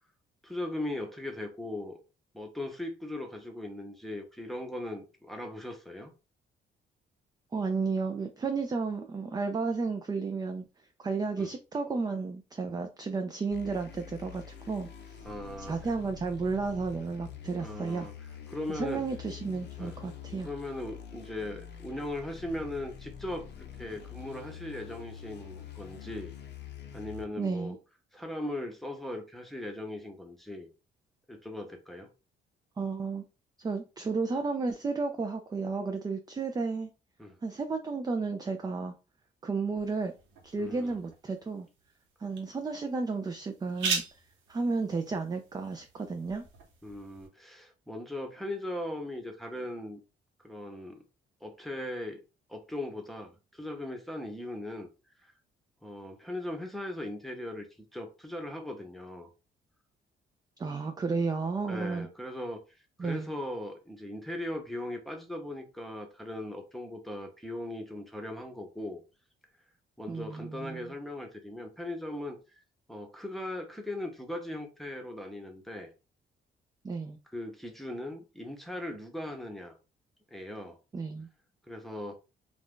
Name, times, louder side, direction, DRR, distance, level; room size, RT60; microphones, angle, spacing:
voice 1, 0.4-2.0 2.3-6.1 11.4-11.5 15.2-15.8 17.6-18.1 18.5-19.0 19.8-20.0 20.4-26.3 26.9-27.7 28.1-30.7 31.3-32.1 37.2-37.4 40.6-40.9 46.8-50.0 50.4-51.0 51.4-52.2 52.5-54.9 55.2-55.3 55.8-57.7 57.9-59.3 61.7-62.6 63.0-69.0 70.0-72.6 72.9-75.9 77.3-79.8 80.3-80.8 81.7-82.2, left 1 dB, ahead, 0.8 m, -39 dB
voice 2, 7.5-10.6 11.0-15.2 15.6-18.1 18.7-20.5 27.4-27.8 32.8-33.2 33.6-36.9 37.4-38.9 39.4-40.1 40.4-41.7 42.2-44.0 44.5-46.4 60.6-62.1 63.0-63.3 70.1-70.9 76.8-77.2 80.9-81.3, right 4 dB, 20° right, 0.3 m, -32 dB
sound 1, 13.5-27.2, left 9 dB, 60° left, 0.6 m, -46 dB
sound 2, 39.8-47.3, right 5 dB, 80° right, 1.0 m, -40 dB
2.5 x 2.2 x 3.6 m
cardioid pair, 90°, 20 cm